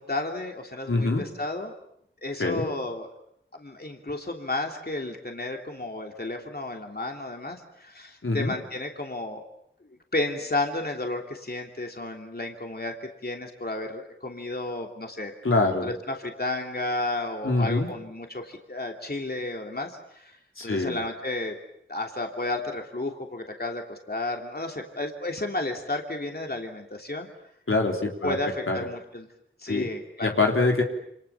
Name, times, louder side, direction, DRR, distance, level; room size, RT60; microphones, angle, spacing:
voice 1, 0.0-1.7 2.2-3.1 3.6-9.4 10.1-15.3 15.6-20.4 20.6-21.5 21.9-27.3 28.2-29.3 29.6-30.4, left 2 dB, 50° left, 2 dB, 3.1 m, -32 dB
voice 2, 0.9-1.2 2.4-2.7 8.2-8.5 15.4-15.9 17.4-17.9 20.6-21.0 27.7-28.4 28.7-28.8 29.7-29.9 30.2-30.8, left 3 dB, 85° left, 1 dB, 3.6 m, -24 dB
28.0 x 27.0 x 7.2 m, 0.74 s
wide cardioid pair, 45°, 20 cm